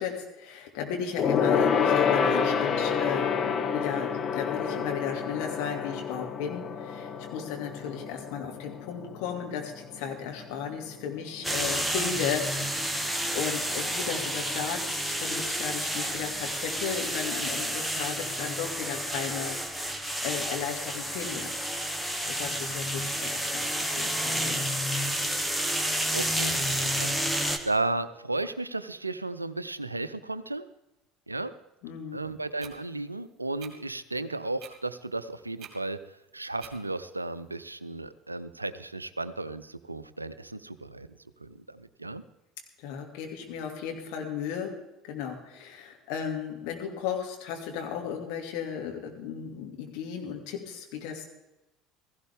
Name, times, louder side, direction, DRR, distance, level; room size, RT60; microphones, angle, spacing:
voice 1, 0.0-12.5 12.8-21.5 22.3-23.7 24.0-24.6 31.8-32.3 42.8-44.7 45.0-51.2, left 7 dB, 60° left, 2 dB, 2.6 m, -35 dB
Gong, 1.2-11.0 11.3-11.5 11.8-11.9, left 6 dB, 40° left, 1.2 m, -28 dB
sound 1, 11.4-27.6, equal, ahead, 1.6 m, -30 dB
voice 2, 26.1-30.6 31.3-31.5 32.1-41.1 41.4-42.2, right 2 dB, 90° right, 14 dB, 0.5 m, -34 dB
sound 2, 32.6-32.7 33.6-33.7 34.6-34.7 35.6-35.7 36.6-36.8, right 9 dB, 45° right, 2.4 m, -45 dB
16.5 x 15.5 x 3.6 m, 0.92 s
figure-of-eight pair, 65°, 0 cm